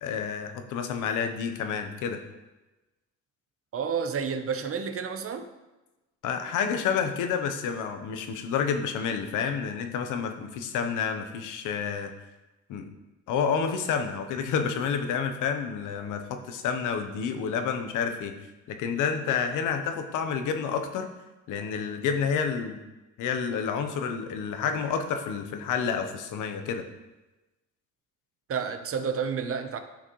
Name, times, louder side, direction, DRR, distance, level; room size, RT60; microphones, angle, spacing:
voice 1, 0.0-2.2 6.2-12.1 12.7-12.8 13.3-18.3 18.7-21.1 21.5-22.8 23.2-26.8, left 6 dB, 90° left, 6 dB, 0.9 m, -29 dB
voice 2, 3.7-5.5 28.5-29.8, right 6 dB, 50° right, 8 dB, 0.8 m, -30 dB
10.0 x 5.8 x 3.1 m, 1.1 s
cardioid pair, 90°, 30 cm